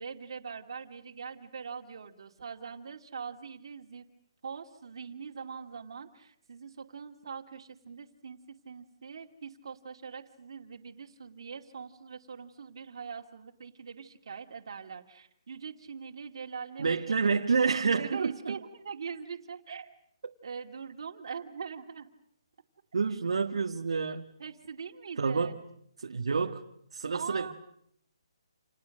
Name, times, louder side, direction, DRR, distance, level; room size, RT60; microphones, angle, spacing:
voice 1, 0.0-4.1 4.4-19.9 20.4-22.1 24.4-25.6 27.1-27.5, right 6 dB, 55° right, 2.6 m, -42 dB
voice 2, 16.8-18.6 20.2-20.3 22.9-24.3 25.2-25.6 26.0-26.6 26.9-27.5, right 5 dB, 75° right, 1.7 m, -28 dB
30.0 x 28.5 x 6.6 m
hypercardioid pair, 170°, 3 cm